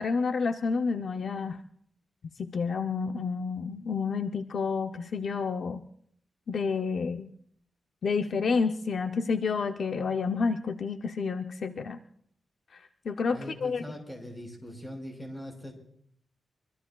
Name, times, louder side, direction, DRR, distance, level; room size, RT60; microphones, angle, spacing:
voice 1, 0.0-1.6 2.4-5.8 6.5-7.3 8.0-12.0 12.7-13.8, left 5 dB, 60° left, 7 dB, 0.5 m, -29 dB
voice 2, 13.3-15.7, equal, 15° left, 2 dB, 5.3 m, -41 dB
24.5 x 24.0 x 2.3 m, 0.66 s
wide cardioid pair, 130°, 0 cm